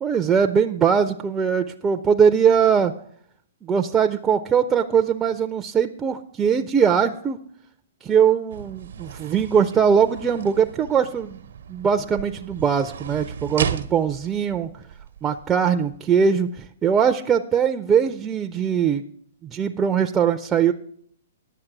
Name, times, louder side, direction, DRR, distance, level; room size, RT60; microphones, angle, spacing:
voice 1, 0.0-2.9 3.6-7.4 8.0-11.4 11.7-14.7 15.2-19.0 19.4-20.7, right 7 dB, 15° right, 7 dB, 0.4 m, -21 dB
sound 1, 8.5-16.0, right 7 dB, 75° right, 0.8 m, -35 dB
10.0 x 7.3 x 5.9 m, 0.62 s
hypercardioid pair, 140°, 0 cm